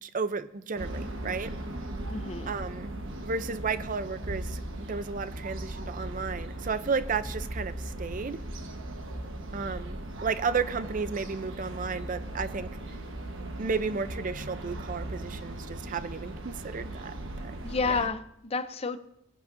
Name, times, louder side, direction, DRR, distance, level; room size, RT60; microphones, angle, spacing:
voice 1, 0.0-1.5 2.5-2.9 3.2-8.4 9.5-12.7 13.6-17.5 17.9-18.1, right 5 dB, 40° right, 0.5 m, -33 dB
sound 1, 0.8-18.1, right 1 dB, 65° right, 1.2 m, -38 dB
voice 2, 2.1-2.5 17.6-19.0, left 4 dB, 30° left, 0.5 m, -30 dB
20.0 x 10.5 x 2.6 m
head